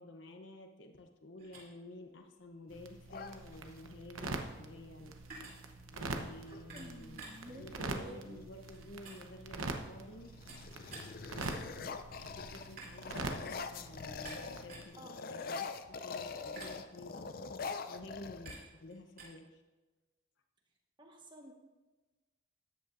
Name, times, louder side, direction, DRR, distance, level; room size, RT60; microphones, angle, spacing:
voice 1, 0.0-5.2 5.9-7.2 7.6-10.4 12.2-15.7 16.0-17.3 17.9-18.5 18.8-19.6, left 1 dB, 60° left, 4 dB, 0.8 m, -51 dB
sound 1, 1.4-19.3, right 3 dB, 45° right, 3.1 m, -55 dB
sound 2, 2.7-14.8, right 3 dB, 80° right, 0.9 m, -44 dB
sound 3, 3.1-4.0 5.7-5.9 6.2-6.7 7.2-8.7 9.4-9.8 10.1-14.7 14.9-18.9, left 5 dB, 45° left, 0.5 m, -44 dB
voice 2, 6.5-8.4 15.0-15.3 21.0-21.5, right 1 dB, 20° right, 1 dB, 1.3 m, -52 dB
14.0 x 10.0 x 2.6 m, 1.2 s
head